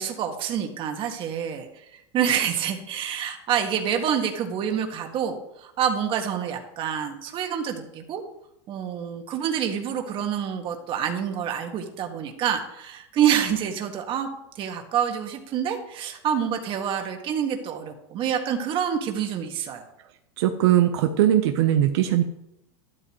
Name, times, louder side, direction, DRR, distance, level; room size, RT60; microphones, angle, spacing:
voice 1, 0.0-1.7 2.1-8.2 8.7-14.3 14.6-19.8, right 8 dB, 35° right, 4 dB, 1.9 m, -27 dB
voice 2, 20.4-22.2, right 11 dB, 70° right, 5 dB, 1.0 m, -20 dB
12.5 x 12.0 x 3.2 m, 0.84 s
supercardioid pair, 140°, 14 cm